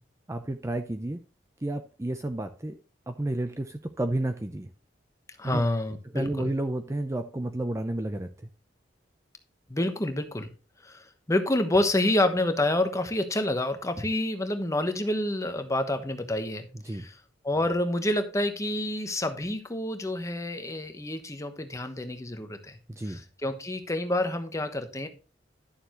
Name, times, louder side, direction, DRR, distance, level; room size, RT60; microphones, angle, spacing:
voice 1, 0.3-1.2 1.6-2.8 3.1-4.7 5.4-5.6 6.1-8.5 16.8-17.1 22.9-23.2, right 1 dB, 15° right, 0.5 m, -31 dB
voice 2, 5.4-6.5 9.7-10.5 10.8-17.2 17.4-22.8 23.1-25.1, left 1 dB, 15° left, 1.0 m, -28 dB
11.5 x 6.9 x 3.0 m
head